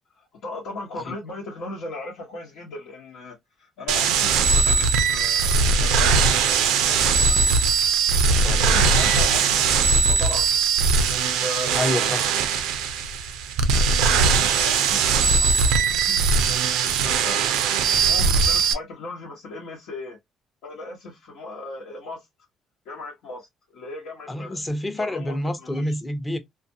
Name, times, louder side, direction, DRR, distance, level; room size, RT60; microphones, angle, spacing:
voice 1, 0.2-7.4 8.2-10.5 11.2-12.4 13.9-16.2 16.9-20.2 20.6-22.3 22.8-23.5 23.7-24.6 24.9-25.9, left 2 dB, 80° left, 1.0 m, -37 dB
sound 1, 3.9-18.7, right 5 dB, 85° right, 0.4 m, -20 dB
voice 2, 8.3-8.8 11.7-12.3 24.3-26.4, left 1 dB, 15° left, 0.6 m, -28 dB
2.5 x 2.4 x 2.6 m
supercardioid pair, 80°, 0 cm